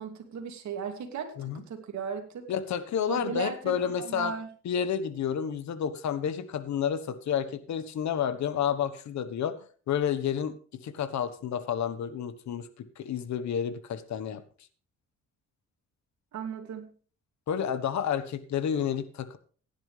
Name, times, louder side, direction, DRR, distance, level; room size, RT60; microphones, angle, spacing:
voice 1, 0.0-2.5 3.1-4.5 16.3-16.9, right 6 dB, 70° right, 4 dB, 2.6 m, -37 dB
voice 2, 2.5-4.3 4.6-9.6 9.9-14.4 17.5-19.4, left 8 dB, 65° left, 13 dB, 1.3 m, -30 dB
16.0 x 10.5 x 3.4 m, 0.40 s
cardioid pair, 90°, 30 cm